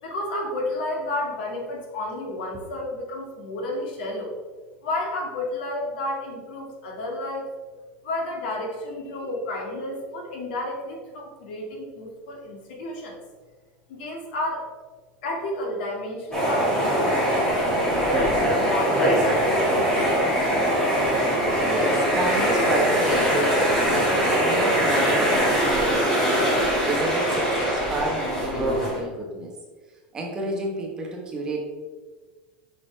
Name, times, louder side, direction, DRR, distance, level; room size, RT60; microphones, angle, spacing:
voice 1, 0.0-4.3 4.8-7.5 8.0-13.2 13.9-14.7 15.2-17.5 17.7-20.0, left 1 dB, 80° left, 0 dB, 2.0 m, -31 dB
sound 1, 16.3-29.0, equal, 10° left, 1.8 m, -22 dB
voice 2, 21.6-29.5 30.1-31.6, right 2 dB, 15° right, -1 dB, 1.1 m, -30 dB
7.3 x 6.1 x 3.3 m, 1.4 s
supercardioid pair, 180°, 5 cm